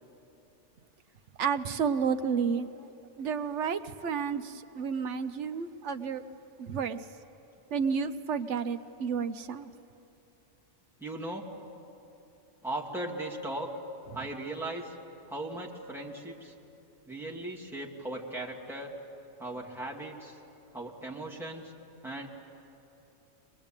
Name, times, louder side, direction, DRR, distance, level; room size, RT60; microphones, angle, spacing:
voice 1, 1.4-2.7 3.2-6.2 6.6-7.0 7.7-9.7, right 6 dB, 70° right, 11 dB, 1.0 m, -31 dB
voice 2, 11.0-11.5 12.6-13.7 14.1-14.9 15.3-16.5 17.1-18.9 19.4-20.4 20.7-21.7 22.0-22.3, right 1 dB, ahead, -4 dB, 2.5 m, -38 dB
22.5 x 21.5 x 8.9 m, 2.8 s
omnidirectional pair, 1.3 m